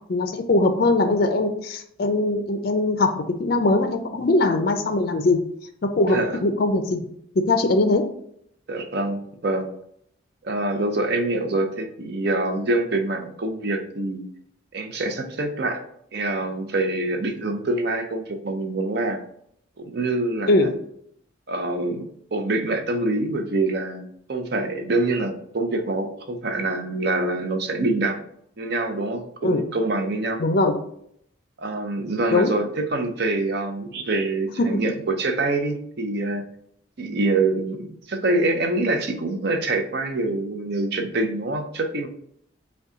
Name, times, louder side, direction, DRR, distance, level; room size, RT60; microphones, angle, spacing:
voice 1, 0.1-3.1 3.4-5.4 6.0-7.1 7.5-8.0 20.5-20.7 29.4-29.6 30.4-30.8 32.3-32.5 34.6-34.8, left 2 dB, 50° left, 6 dB, 0.4 m, -21 dB
voice 2, 6.1-6.4 8.7-9.7 10.4-14.3 14.7-15.8 16.1-19.2 19.8-20.7 21.5-28.2 28.6-30.4 31.6-36.5 37.0-42.1, right 2 dB, 50° right, 5 dB, 0.6 m, -25 dB
5.3 x 2.3 x 3.7 m, 0.69 s
head